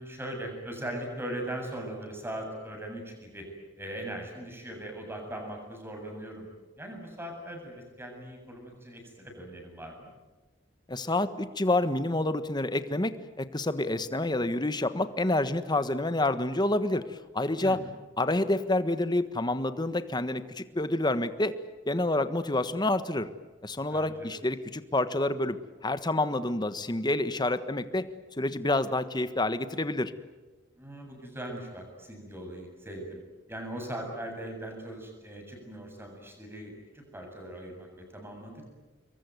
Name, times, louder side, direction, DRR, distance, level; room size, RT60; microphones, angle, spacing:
voice 1, 0.0-3.4 3.8-6.5 6.8-10.1 17.6-17.8 23.9-24.1 30.8-33.2 33.5-38.7, right 1 dB, 15° right, 3 dB, 7.7 m, -40 dB
voice 2, 10.9-17.8 18.2-21.5 21.8-23.3 23.6-28.1 28.4-30.1, left 2 dB, 25° left, 11 dB, 1.4 m, -28 dB
27.0 x 23.0 x 9.4 m, 1.2 s
head